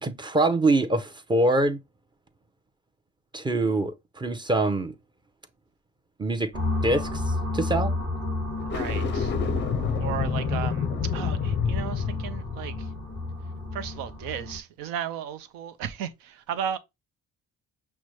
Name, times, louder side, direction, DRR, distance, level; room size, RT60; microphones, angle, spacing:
voice 1, 0.0-1.8 3.3-4.9 6.2-6.5 6.8-7.9, right 2 dB, 15° right, 0.6 m, -24 dB
sound 1, 6.5-14.6, left 2 dB, 40° right, 1.3 m, -31 dB
sound 2, 8.6-13.9, left 7 dB, 35° left, 0.5 m, -29 dB
voice 2, 8.6-9.3 10.0-12.9 13.7-16.8, right 9 dB, 85° right, 0.6 m, -35 dB
5.9 x 2.1 x 3.2 m
cardioid pair, 85°, 33 cm